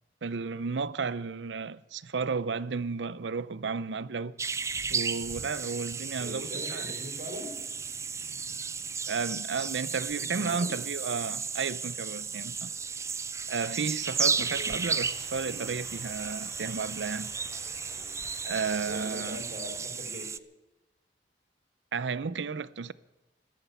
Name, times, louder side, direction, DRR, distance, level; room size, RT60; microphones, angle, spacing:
voice 1, 0.2-4.3 4.9-6.9 9.1-12.7 13.5-17.3 18.4-19.4 21.9-22.9, right 5 dB, 85° right, 0.6 m, -33 dB
sound 1, 4.4-20.4, right 5 dB, 15° right, 0.4 m, -34 dB
voice 2, 6.1-7.6 10.2-10.8 14.3-14.8 17.9-18.2 18.9-20.3, equal, 45° right, 3.9 m, -42 dB
sound 2, 14.3-19.9, left 2 dB, 15° left, 4.2 m, -50 dB
14.0 x 12.0 x 8.1 m
head